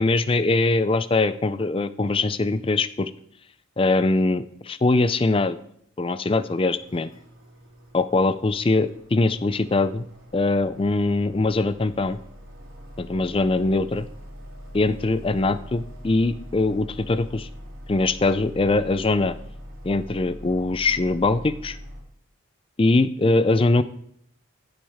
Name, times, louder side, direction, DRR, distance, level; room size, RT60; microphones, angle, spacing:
voice 1, 0.0-3.1 3.8-5.6 6.0-7.1 7.9-10.1 10.3-12.2 13.0-14.1 14.7-17.5 17.9-19.3 19.8-21.8 22.8-23.8, left 2 dB, 25° left, 14 dB, 0.4 m, -22 dB
sound 1, 6.8-22.0, equal, 70° right, 2.7 m, -42 dB
15.0 x 8.7 x 3.6 m, 0.69 s
head